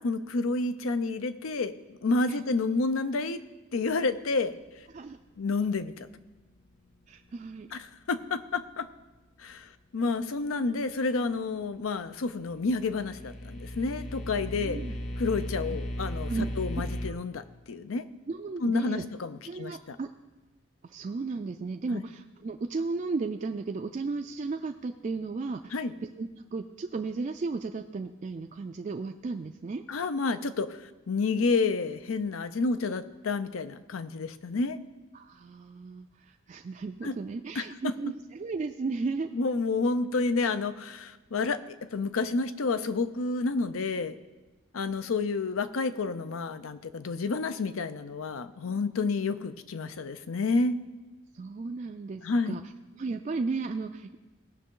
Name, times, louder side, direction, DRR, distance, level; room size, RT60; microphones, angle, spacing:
voice 1, 0.0-3.4 3.7-4.5 5.4-6.1 7.7-8.9 9.4-14.8 15.2-18.1 18.6-20.0 21.9-22.0 25.7-25.9 29.9-34.8 37.0-37.2 37.6-37.9 39.3-44.1 44.7-50.8 52.2-52.6, left 3 dB, 85° left, 12 dB, 0.6 m, -30 dB
voice 2, 7.1-7.7 14.5-15.0 16.3-16.5 18.3-19.0 19.4-20.1 20.8-25.7 26.2-29.8 35.1-39.3 51.3-52.6 53.0-54.2, right 4 dB, 35° right, 5 dB, 0.3 m, -34 dB
sound 1, 12.6-17.1, left 1 dB, 40° left, 0.7 m, -36 dB
18.0 x 6.0 x 3.8 m, 1.1 s
head